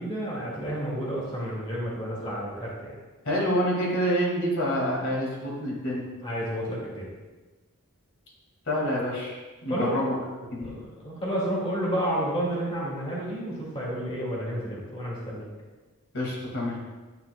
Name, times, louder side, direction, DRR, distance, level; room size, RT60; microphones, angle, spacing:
voice 1, 0.0-3.0 6.2-7.1 9.7-10.0 10.6-15.5, equal, 25° left, -5 dB, 2.1 m, -31 dB
voice 2, 3.3-6.0 8.7-10.2 10.7-10.8 16.1-16.8, equal, 65° left, -3 dB, 2.2 m, -27 dB
9.6 x 9.0 x 2.3 m, 1.3 s
head